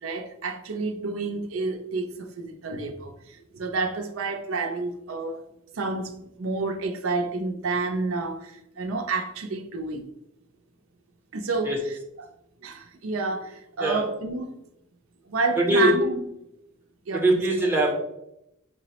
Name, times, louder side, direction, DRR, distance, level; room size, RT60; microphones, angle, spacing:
voice 1, 0.0-5.4 5.7-10.1 11.3-12.3 12.6-14.5 15.3-16.2 17.1-17.5, right 3 dB, 85° right, 0.5 m, -30 dB
voice 2, 15.6-15.9 17.1-17.9, right 1 dB, 10° right, 0.6 m, -21 dB
5.9 x 2.0 x 2.8 m
head